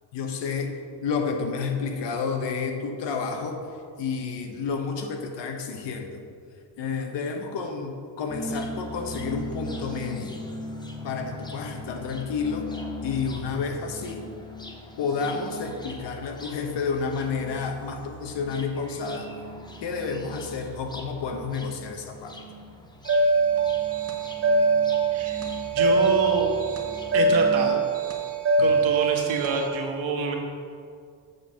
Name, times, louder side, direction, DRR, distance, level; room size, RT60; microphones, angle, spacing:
voice 1, 0.1-0.7 1.0-3.7 4.0-6.2 6.8-10.4 11.0-12.7 13.0-14.3 15.0-19.3 19.8-22.4 28.6-28.7, left 5 dB, 65° left, 5 dB, 1.0 m, -30 dB
sound 1, 8.3-27.7, left 1 dB, 10° left, 0.5 m, -39 dB
sound 2, 23.0-29.7, right 3 dB, 30° right, 0.8 m, -23 dB
voice 2, 25.1-25.5 25.7-26.5 27.1-27.8 28.6-30.3, right 4 dB, 85° right, 1 dB, 1.4 m, -27 dB
7.9 x 4.4 x 6.2 m, 2.3 s
cardioid pair, 165°, 45 cm